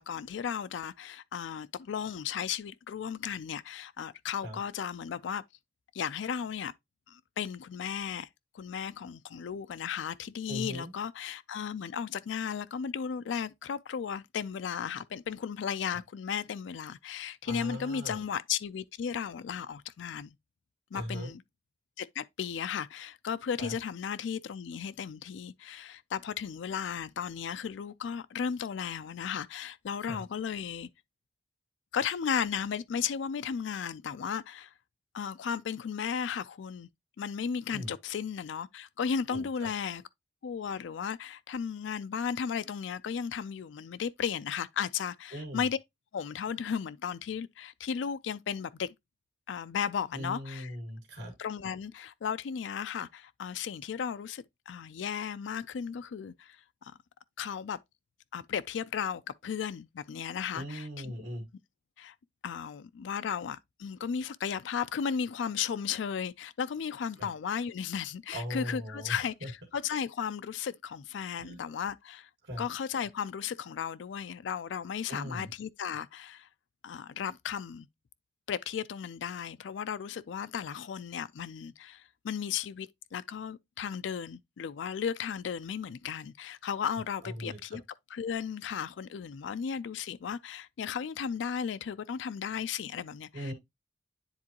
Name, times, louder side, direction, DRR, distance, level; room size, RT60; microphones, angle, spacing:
voice 1, 0.0-5.4 5.9-6.7 7.1-8.3 8.5-20.3 20.9-21.4 22.0-30.9 31.9-34.7 35.1-36.9 37.2-40.0 40.4-45.8 46.1-48.9 49.5-50.7 51.4-57.0 57.4-57.8 58.3-61.1 62.0-62.1 62.4-72.3 72.6-76.5 76.8-77.9 78.5-87.8 88.1-93.5, left 7 dB, 85° left, 0.4 m, -35 dB
voice 2, 10.5-10.9 17.4-18.2 20.9-21.3 23.6-23.7 30.0-30.2 37.7-37.9 39.3-39.7 45.3-45.7 50.1-51.3 60.5-61.5 67.2-67.3 68.3-69.5 71.4-71.6 72.4-72.7 75.1-75.5 87.2-87.8 93.3-93.5, equal, 70° right, 1.9 m, -39 dB
9.7 x 3.8 x 2.9 m
head